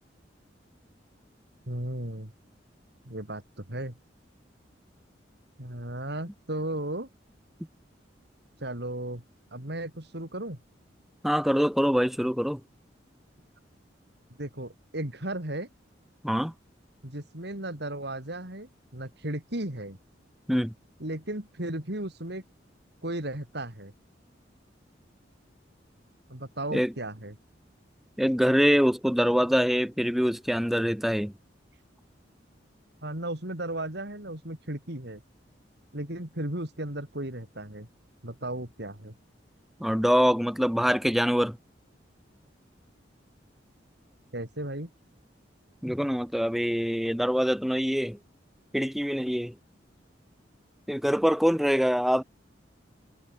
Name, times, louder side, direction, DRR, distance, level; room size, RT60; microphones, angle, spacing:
voice 1, 1.7-2.3 3.1-4.0 5.6-7.1 8.6-9.2 9.5-10.6 14.4-15.7 17.0-20.0 21.0-22.4 23.0-23.9 26.3-27.3 33.0-35.2 35.9-37.9 38.2-39.1 44.3-44.9, right 1 dB, 65° right, 4.6 m, -35 dB
voice 2, 11.2-12.6 16.2-16.5 20.5-20.7 26.7-26.9 28.2-31.3 39.8-41.6 45.8-48.2 48.7-49.5 50.9-52.2, equal, ahead, 3.1 m, -24 dB
head